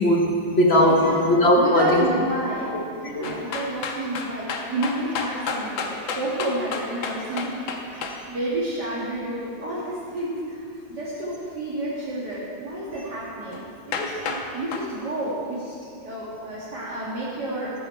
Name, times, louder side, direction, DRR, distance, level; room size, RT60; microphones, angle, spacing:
voice 1, 0.0-2.0 3.0-3.4, left 1 dB, 40° left, 0 dB, 1.2 m, -19 dB
voice 2, 1.5-7.6 7.9-15.8 16.0-17.7, right 1 dB, 60° right, -8 dB, 2.6 m, -30 dB
sound 1, 3.2-8.2 13.5-13.6 13.9-14.4 14.7-14.9, left 5 dB, 85° left, 1.8 m, -30 dB
14.5 x 11.0 x 4.5 m, 2.4 s
omnidirectional pair, 2.1 m